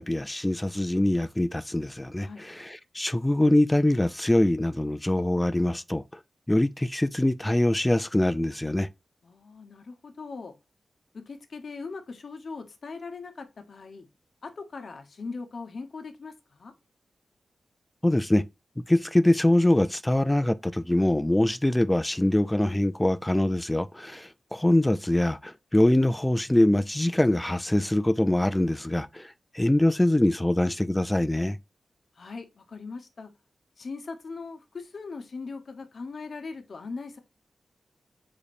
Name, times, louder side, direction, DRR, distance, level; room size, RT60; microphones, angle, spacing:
voice 1, 0.0-6.0 6.5-8.9 18.0-18.4 18.8-31.6, left 1 dB, 10° left, 0.4 m, -24 dB
voice 2, 9.2-10.5 11.1-14.1 14.4-16.7 32.1-33.3 33.8-37.2, left 4 dB, 60° left, 0.9 m, -40 dB
5.0 x 4.1 x 2.5 m
wide cardioid pair, 105°, 0 cm